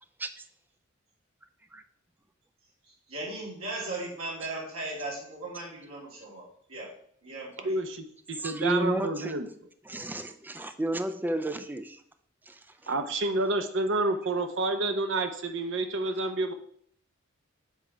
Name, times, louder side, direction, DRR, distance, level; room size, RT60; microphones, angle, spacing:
voice 1, 2.8-6.9 7.2-7.8, right 2 dB, 80° right, -5 dB, 2.9 m, -37 dB
voice 2, 7.6-9.5 12.9-16.5, right 2 dB, 60° right, 7 dB, 0.8 m, -29 dB
voice 3, 8.3-9.4 9.8-12.0 12.5-12.9, right 1 dB, 10° right, 9 dB, 0.3 m, -32 dB
7.4 x 3.6 x 5.6 m, 0.64 s
head